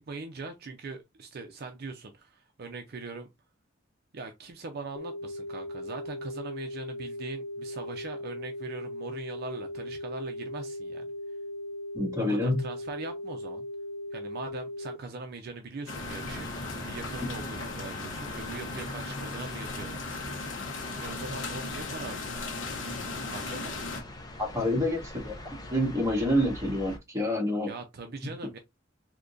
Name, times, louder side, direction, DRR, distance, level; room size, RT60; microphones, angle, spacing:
voice 1, 0.0-3.3 4.1-11.1 12.2-13.7 14.1-16.5 16.8-22.5 23.3-23.8 27.7-28.6, right 3 dB, 55° right, 0.5 m, -41 dB
sound 1, 5.0-15.0, left 1 dB, 70° left, 0.3 m, -38 dB
voice 2, 11.9-12.5 24.4-25.3 25.7-27.7, left 1 dB, 15° right, 1.4 m, -27 dB
sound 2, 15.9-24.0, left 3 dB, 90° left, 0.9 m, -37 dB
sound 3, 15.9-27.0, left 1 dB, 20° left, 0.7 m, -43 dB
3.7 x 2.8 x 2.5 m
head